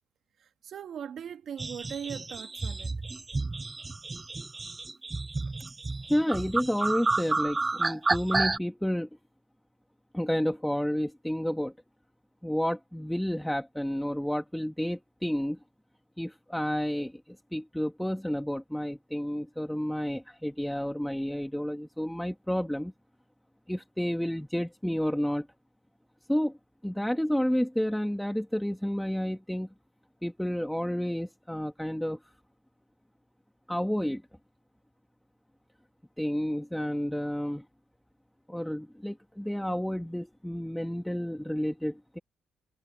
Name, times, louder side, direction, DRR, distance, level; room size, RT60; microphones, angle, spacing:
voice 1, 0.6-2.9, right 8 dB, 60° right, 2.6 m, -39 dB
sound 1, 1.6-8.6, right 3 dB, 25° right, 0.6 m, -31 dB
voice 2, 6.1-9.1 10.1-11.7 12.4-15.6 16.2-17.2 17.5-22.9 23.7-25.5 26.3-26.6 26.8-29.7 30.2-32.2 33.7-34.2 36.2-37.6 38.5-42.2, equal, 5° left, 2.1 m, -30 dB
cardioid pair, 90°, 0 cm